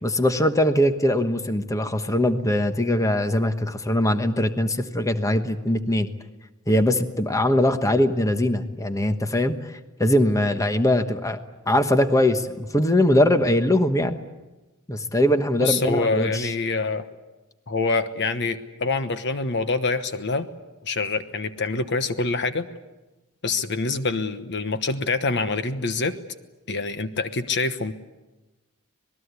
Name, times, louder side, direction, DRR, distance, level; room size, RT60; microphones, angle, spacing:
voice 1, 0.0-6.1 6.7-9.6 10.0-11.4 11.7-14.2 14.9-16.5, left 1 dB, 15° left, 8 dB, 1.2 m, -21 dB
voice 2, 15.6-17.1 17.7-20.5 20.8-22.7 23.4-26.2 26.7-27.9, left 3 dB, 55° left, 10 dB, 1.1 m, -25 dB
26.0 x 19.5 x 8.3 m, 1.1 s
head